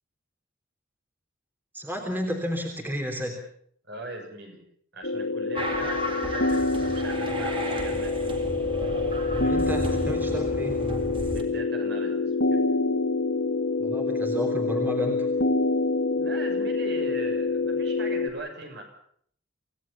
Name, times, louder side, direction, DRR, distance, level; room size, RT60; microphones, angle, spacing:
voice 1, 1.7-3.4 5.8-5.9 9.4-10.8 13.8-15.3, equal, 10° right, 3 dB, 3.3 m, -32 dB
voice 2, 3.9-4.7 4.9-8.1 11.3-12.6 16.1-18.8, right 2 dB, 55° right, 4 dB, 7.1 m, -40 dB
sound 1, 5.0-18.3, left 3 dB, 75° left, 2.8 m, -26 dB
sound 2, 5.5-11.4, equal, 25° right, 4.0 m, -33 dB
27.5 x 18.0 x 7.2 m, 0.64 s
head